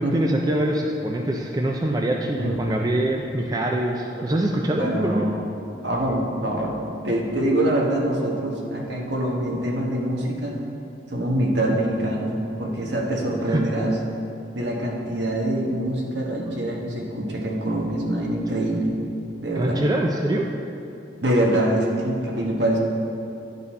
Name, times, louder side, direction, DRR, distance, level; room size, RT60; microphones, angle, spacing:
voice 1, 0.0-5.3 13.5-13.6 19.6-20.5, right 1 dB, 20° right, 0 dB, 0.4 m, -24 dB
voice 2, 4.8-5.4 5.8-6.7 7.0-10.6 11.1-12.3 12.6-14.0 14.5-18.9 19.4-19.8 21.2-22.8, right 1 dB, 65° right, -2 dB, 1.2 m, -24 dB
11.0 x 4.1 x 4.2 m, 2.9 s
head